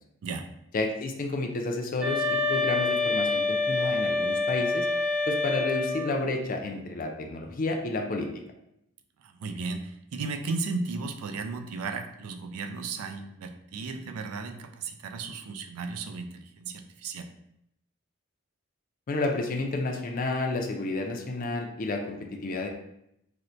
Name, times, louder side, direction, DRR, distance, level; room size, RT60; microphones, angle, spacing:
voice 1, 0.7-4.9 5.3-8.3 19.1-22.7, left 2 dB, 40° left, 2 dB, 0.4 m, -30 dB
sound 1, 2.0-6.1, left 3 dB, 5° right, 0.7 m, -27 dB
voice 2, 9.2-17.3, right 4 dB, 80° right, 6 dB, 0.4 m, -35 dB
4.2 x 2.1 x 2.5 m, 0.79 s
head